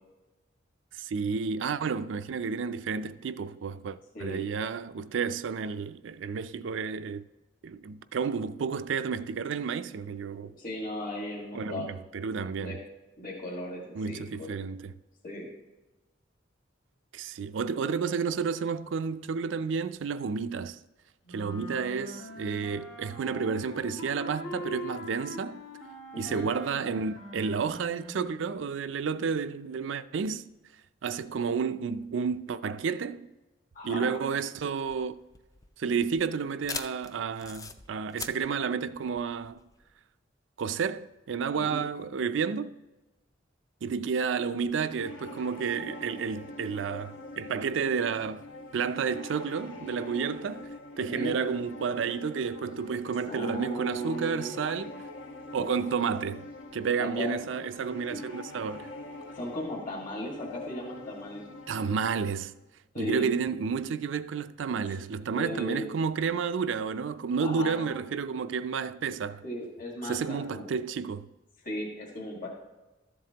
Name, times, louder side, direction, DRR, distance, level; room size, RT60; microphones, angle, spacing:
voice 1, 0.9-7.3 7.6-10.5 11.5-12.8 14.0-15.0 17.1-20.8 21.3-25.6 26.2-30.5 31.0-33.3 33.8-35.1 35.8-39.6 40.6-42.8 43.8-48.4 48.7-55.0 55.5-56.5 56.7-58.9 61.7-62.5 63.0-69.4 70.0-71.3, right 6 dB, 75° right, 0.4 m, -31 dB
voice 2, 4.1-4.5 10.4-12.0 12.5-12.8 13.2-14.6 15.2-15.5 26.1-26.5 33.7-34.1 41.5-41.9 51.0-51.4 53.2-54.7 57.0-57.3 59.3-61.5 62.9-63.3 65.3-65.9 67.4-67.9 69.4-70.7 71.6-72.5, left 1 dB, 45° left, 1.8 m, -36 dB
sound 1, 21.3-28.6, left 1 dB, 90° left, 2.0 m, -43 dB
sound 2, 34.8-39.9, left 5 dB, 20° left, 0.4 m, -42 dB
sound 3, 44.6-62.3, left 2 dB, 70° left, 1.1 m, -45 dB
13.0 x 7.5 x 2.9 m
head